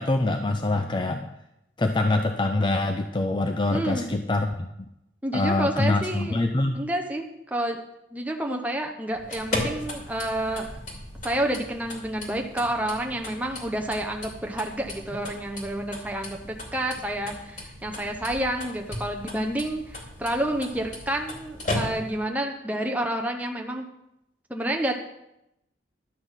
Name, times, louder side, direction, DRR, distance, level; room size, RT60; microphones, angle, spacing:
voice 1, 0.0-1.3 1.8-4.7 5.3-6.8, left 2 dB, 25° left, 5 dB, 0.5 m, -25 dB
voice 2, 3.7-4.1 5.2-6.4 6.7-7.8 8.1-10.7 11.2-23.9 24.5-24.9, right 1 dB, 10° right, 2 dB, 0.8 m, -29 dB
sound 1, 9.1-22.3, left 1 dB, 45° left, 2.6 m, -36 dB
11.5 x 6.0 x 7.3 m, 0.85 s
head